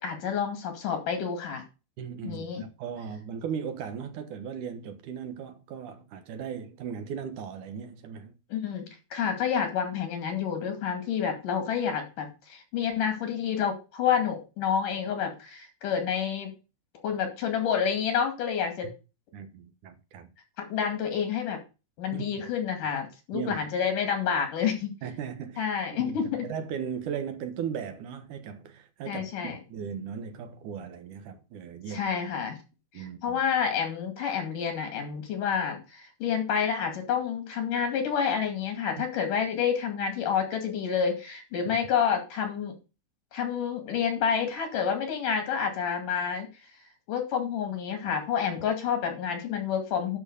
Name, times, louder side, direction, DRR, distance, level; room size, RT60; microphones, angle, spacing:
voice 1, 0.0-1.6 2.2-2.6 8.5-16.5 17.0-18.9 20.7-21.6 22.0-24.9 25.6-26.5 29.1-29.6 31.9-32.6 33.0-42.7 43.3-46.5 47.1-50.2, left 7 dB, 85° left, 4.0 m, -29 dB
voice 2, 2.0-8.3 19.3-20.3 22.1-22.3 23.3-23.6 25.0-25.7 25.9-26.2 26.4-32.1 32.9-33.4 41.7-41.8, right 7 dB, 80° right, 2.7 m, -37 dB
11.0 x 4.7 x 6.9 m
omnidirectional pair, 3.6 m